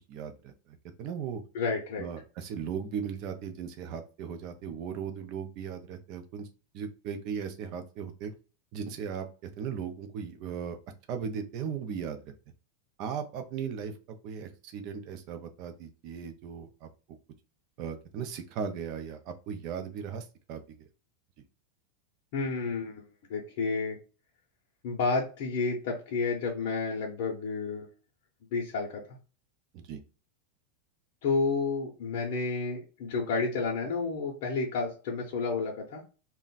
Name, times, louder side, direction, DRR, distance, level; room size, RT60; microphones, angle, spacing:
voice 1, 0.1-0.5 1.0-1.4 2.0-6.5 6.7-8.3 8.7-10.8 11.1-12.3 13.0-16.9 17.8-20.6 29.7-30.0, right 7 dB, 35° right, 7 dB, 0.5 m, -37 dB
voice 2, 1.5-2.1 22.3-23.0 23.3-24.0 24.8-27.9 28.5-29.2 31.2-36.0, left 4 dB, 50° left, -2 dB, 0.7 m, -30 dB
2.4 x 2.2 x 3.9 m, 0.34 s
supercardioid pair, 170°, 0 cm